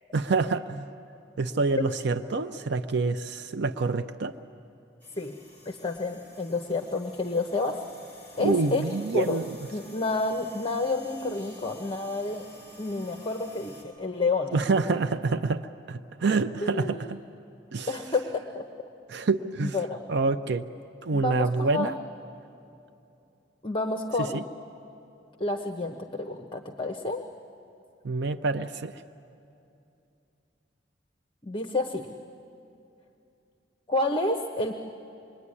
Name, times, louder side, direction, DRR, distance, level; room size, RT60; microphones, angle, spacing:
voice 1, 0.1-0.8 1.4-4.3 8.4-9.6 14.5-15.6 15.9-17.2 17.7-17.9 19.1-19.8 20.1-20.7 21.0-22.0 24.3-24.4 28.0-29.0, right 3 dB, 65° right, 10 dB, 0.6 m, -27 dB
sound 1, 5.0-13.8, left 1 dB, 10° left, 6.7 m, -51 dB
voice 2, 5.6-7.8 8.4-9.4 9.7-12.5 12.8-14.6 16.6-17.1 17.9-18.6 19.6-20.0 21.1-21.9 23.6-24.4 25.4-27.2 31.4-32.2 33.9-34.7, left 2 dB, 25° left, 4 dB, 1.0 m, -29 dB
26.0 x 22.5 x 9.8 m, 2.7 s
head